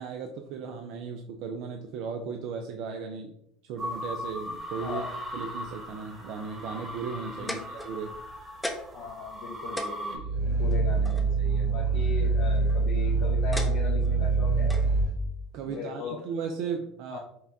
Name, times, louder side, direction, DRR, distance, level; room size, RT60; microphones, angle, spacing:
voice 1, 0.0-3.3 3.6-5.0 5.3-8.1 10.1-10.3 15.5-17.2, right 5 dB, 65° right, 5 dB, 0.3 m, -36 dB
sound 1, 3.8-10.2, equal, 30° right, 1.1 m, -38 dB
sound 2, 7.5-8.2 8.6-9.1 9.4-9.5 9.8-11.3 12.4-12.8 13.5-14.1 14.7-14.9 15.7-15.8, left 1 dB, 5° left, 0.6 m, -37 dB
voice 2, 8.9-14.8 15.7-16.2 17.1-17.2, left 5 dB, 65° left, -4 dB, 0.7 m, -38 dB
Growling, 10.2-15.1, right 3 dB, 90° right, 1.5 m, -25 dB
5.4 x 2.2 x 2.6 m, 0.76 s
hypercardioid pair, 80°, 0 cm